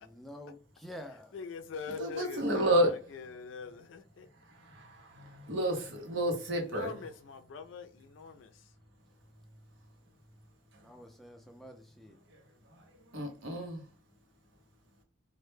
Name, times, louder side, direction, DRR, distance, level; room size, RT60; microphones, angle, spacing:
voice 1, 0.0-1.3 10.8-12.2, equal, ahead, 0.3 m, -48 dB
voice 2, 1.3-4.3 6.5-8.7, left 5 dB, 85° left, 0.4 m, -44 dB
voice 3, 2.0-2.9 4.4-6.9 10.7-11.0 12.3-13.9, right 1 dB, 90° right, 0.7 m, -32 dB
2.1 x 2.1 x 3.1 m
head